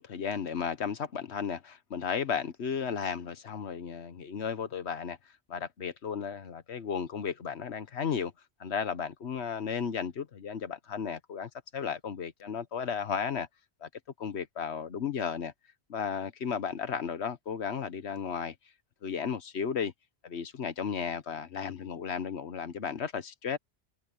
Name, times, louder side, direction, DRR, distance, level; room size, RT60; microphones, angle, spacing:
voice 1, 0.0-5.2 5.5-8.3 8.6-13.5 13.8-13.9 14.2-15.5 15.9-18.5 19.0-19.9 20.2-23.6, left 7 dB, 70° left, 1.4 m, -34 dB
omnidirectional pair, 1.2 m